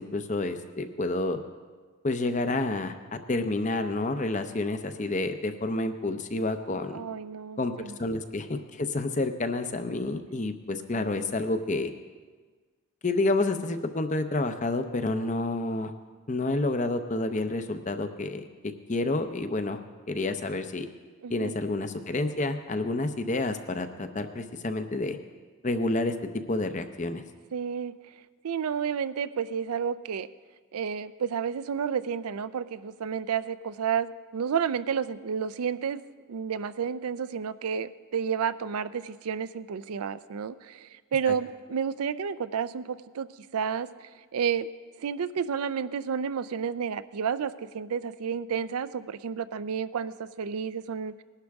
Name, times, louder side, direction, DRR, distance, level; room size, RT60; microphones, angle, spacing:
voice 1, 0.0-1.4 2.0-2.9 3.3-7.0 7.6-7.7 8.0-11.9 13.0-15.9 16.3-18.5 18.9-19.8 20.1-20.9 21.3-25.2 25.6-26.1 26.5-27.2 41.3-41.4, left 2 dB, 35° left, 8 dB, 0.6 m, -29 dB
voice 2, 6.9-7.9 21.2-21.5 27.5-27.9 28.4-30.3 30.7-36.0 36.3-43.3 43.5-43.9 44.3-44.7 45.0-51.1, right 7 dB, 85° right, 14 dB, 0.4 m, -31 dB
19.5 x 11.5 x 3.5 m, 1.4 s
head